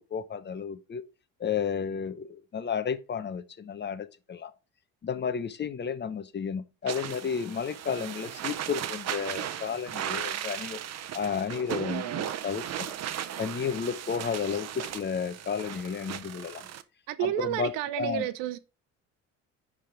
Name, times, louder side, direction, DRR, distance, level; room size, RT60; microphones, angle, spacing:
voice 1, 0.1-1.0 1.4-4.5 5.0-10.8 11.1-12.9 13.4-16.7 17.2-18.3, left 7 dB, 35° left, 0.8 m, -32 dB
sound 1, 6.9-16.8, right 10 dB, 50° right, 0.8 m, -36 dB
voice 2, 17.1-18.6, right 12 dB, 85° right, 0.8 m, -30 dB
10.0 x 3.7 x 4.8 m
cardioid pair, 95°, 33 cm